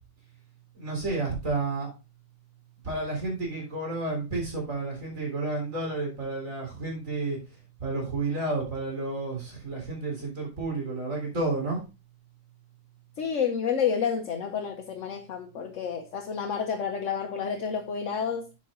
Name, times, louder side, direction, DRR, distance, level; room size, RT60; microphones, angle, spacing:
voice 1, 0.7-1.9 2.8-7.4 7.8-11.8, right 3 dB, 85° right, 4.3 m, -31 dB
voice 2, 13.2-18.6, left 7 dB, 70° left, 1.2 m, -30 dB
8.3 x 7.4 x 3.7 m
omnidirectional pair, 1.4 m